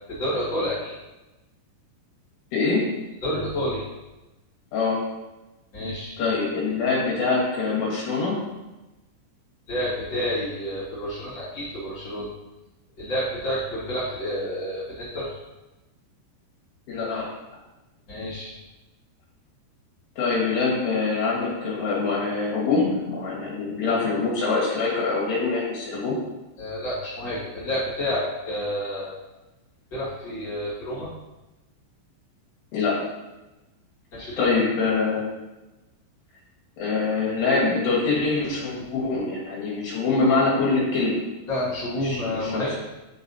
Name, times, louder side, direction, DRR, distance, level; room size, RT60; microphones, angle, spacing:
voice 1, 0.1-1.0 3.2-3.8 5.7-6.1 9.7-12.3 13.0-15.3 18.1-18.5 26.6-29.1 29.9-31.1 34.1-34.5 41.5-42.8, left 1 dB, 45° left, -12 dB, 1.4 m, -29 dB
voice 2, 2.5-2.8 4.7-5.0 6.2-8.3 16.9-17.2 20.2-26.1 32.7-32.9 34.4-35.2 36.8-41.2 42.0-42.8, left 4 dB, 75° left, -6 dB, 3.3 m, -24 dB
9.0 x 4.0 x 2.7 m, 1.0 s
omnidirectional pair, 5.1 m